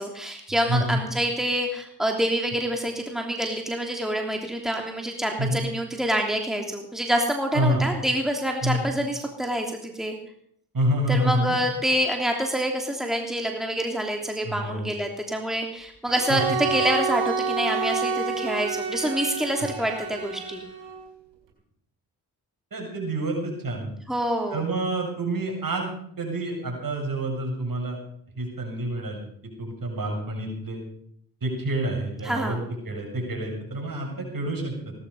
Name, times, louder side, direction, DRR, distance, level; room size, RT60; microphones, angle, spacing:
voice 1, 0.0-10.2 11.1-20.6 24.1-24.6 32.2-32.6, equal, ahead, 2 dB, 3.1 m, -27 dB
voice 2, 0.7-1.0 5.4-5.6 7.5-7.9 8.6-8.8 10.7-11.6 14.4-14.9 16.3-16.4 22.7-23.9 24.5-28.0 28.4-29.3 29.6-30.8 31.4-34.9, right 1 dB, 50° right, 1 dB, 7.4 m, -28 dB
Bowed string instrument, 16.1-21.0, right 5 dB, 85° right, 4.5 m, -29 dB
17.5 x 13.0 x 5.6 m, 0.67 s
supercardioid pair, 40°, 43 cm